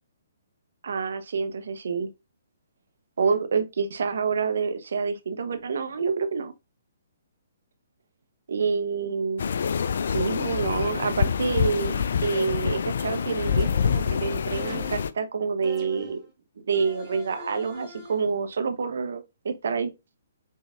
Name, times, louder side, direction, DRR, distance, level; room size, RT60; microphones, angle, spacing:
voice 1, 0.8-2.1 3.2-6.5 8.5-9.4 10.1-11.9 12.2-16.2 16.7-19.9, right 5 dB, 70° right, 0.9 m, -27 dB
sound 1, 9.4-15.1, left 7 dB, 65° left, 0.4 m, -26 dB
sound 2, 13.5-14.1 14.5-15.2 15.6-16.3 16.7-18.3, left 1 dB, ahead, 2.0 m, -44 dB
5.5 x 3.9 x 2.4 m
hypercardioid pair, 135°, 0 cm